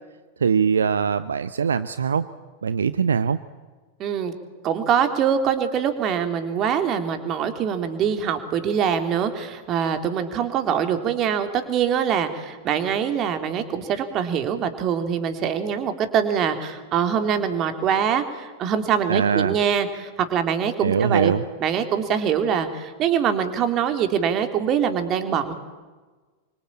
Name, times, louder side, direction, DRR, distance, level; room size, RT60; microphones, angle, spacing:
voice 1, 0.4-2.3 2.6-3.4 19.1-19.6 20.8-21.4, right 6 dB, 70° right, 14 dB, 0.8 m, -22 dB
voice 2, 4.0-4.3 4.6-25.5, right 8 dB, 35° right, 7 dB, 3.4 m, -24 dB
27.0 x 24.5 x 8.8 m, 1.3 s
figure-of-eight pair, 90°, 0 cm